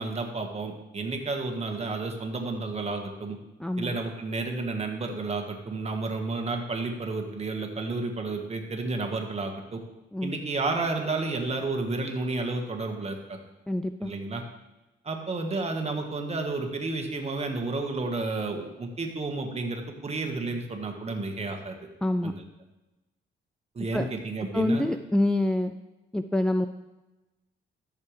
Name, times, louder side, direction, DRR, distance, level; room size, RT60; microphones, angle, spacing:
voice 1, 0.0-3.4 3.8-9.8 10.2-13.4 14.0-14.4 15.0-21.7 22.2-22.4 23.7-24.8, right 3 dB, 30° right, 3 dB, 1.5 m, -31 dB
voice 2, 3.6-3.9 10.1-10.3 13.7-14.1 22.0-22.4 23.9-24.1 24.5-25.7 26.1-26.7, left 1 dB, 5° left, 8 dB, 0.3 m, -26 dB
14.0 x 6.6 x 3.3 m, 1.0 s
cardioid pair, 90°, 20 cm